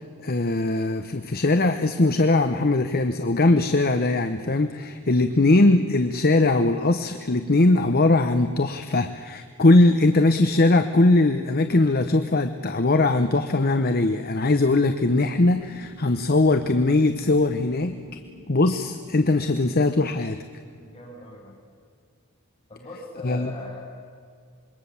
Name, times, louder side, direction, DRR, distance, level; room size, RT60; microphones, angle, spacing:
voice 1, 0.2-18.0 18.5-20.4 23.2-23.5, left 2 dB, 45° left, 8 dB, 0.9 m, -20 dB
sound 1, 14.9-19.9, right 1 dB, 65° left, 4.9 m, -46 dB
voice 2, 20.6-21.6 22.7-23.8, left 1 dB, 25° left, -3 dB, 7.4 m, -40 dB
26.0 x 22.5 x 7.2 m, 2.2 s
head